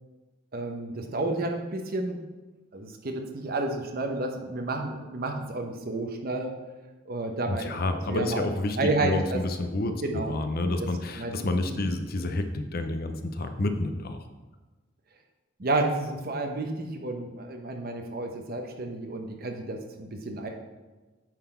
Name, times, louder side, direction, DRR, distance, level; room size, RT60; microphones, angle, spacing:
voice 1, 0.5-2.2 2.7-6.6 7.1-8.4 8.8-9.4 10.0-10.3 10.8-11.4 11.7-11.8 15.6-20.5, right 2 dB, 50° right, 4 dB, 0.9 m, -31 dB
voice 2, 7.5-14.2, left 2 dB, 50° left, 8 dB, 0.6 m, -29 dB
9.1 x 4.0 x 4.4 m, 1.2 s
head